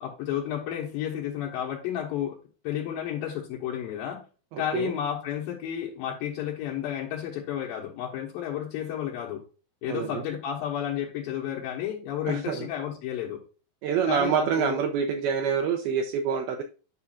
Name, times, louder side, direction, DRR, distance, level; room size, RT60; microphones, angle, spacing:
voice 1, 0.0-2.3 2.6-4.2 4.6-9.4 9.8-13.4 14.1-14.8, left 10 dB, 75° left, -2 dB, 2.7 m, -32 dB
voice 2, 4.5-4.9 9.9-10.2 12.3-12.7 13.8-16.6, right 7 dB, 80° right, 4 dB, 2.5 m, -27 dB
9.8 x 5.7 x 2.5 m, 0.35 s
omnidirectional pair, 4.5 m